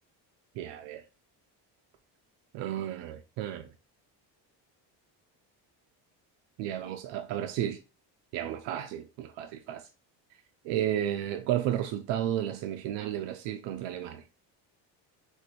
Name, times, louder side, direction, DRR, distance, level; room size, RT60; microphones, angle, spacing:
voice 1, 0.6-1.0 2.5-3.7 6.6-7.8 8.3-9.9 10.6-14.2, right 11 dB, 80° right, 0.6 m, -32 dB
6.3 x 2.6 x 2.9 m
cardioid pair, 165°, 43 cm